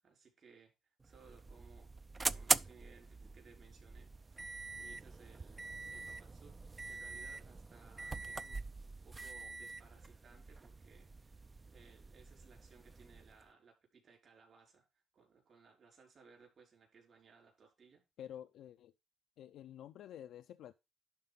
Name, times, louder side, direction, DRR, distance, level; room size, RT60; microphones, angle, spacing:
voice 1, 0.0-1.9 2.2-4.4 4.8-5.6 5.9-6.6 6.8-8.6 9.0-18.0, right 5 dB, 50° right, 5.0 m, -63 dB
sound 1, 1.0-13.4, right 3 dB, 25° right, 0.4 m, -42 dB
voice 2, 18.2-18.9 19.4-20.7, left 10 dB, 80° left, 0.5 m, -50 dB
11.5 x 4.1 x 5.4 m
cardioid pair, 90°, 0 cm